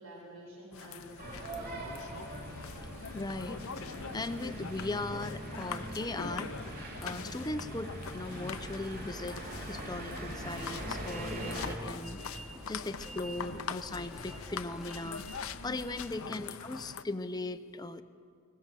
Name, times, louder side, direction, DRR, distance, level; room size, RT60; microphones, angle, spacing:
voice 1, 0.0-1.8 16.1-16.5, equal, 80° right, -3 dB, 6.8 m, -49 dB
sound 1, 0.7-17.0, left 6 dB, 70° left, 0.8 m, -43 dB
sound 2, 1.2-11.7, right 1 dB, 45° right, 3.4 m, -42 dB
voice 2, 3.1-3.6 4.1-12.2 12.7-18.0, left 2 dB, 20° left, 10 dB, 0.7 m, -39 dB
sound 3, 10.3-16.3, right 1 dB, ahead, 1.4 m, -48 dB
22.0 x 19.5 x 7.6 m, 2.3 s
head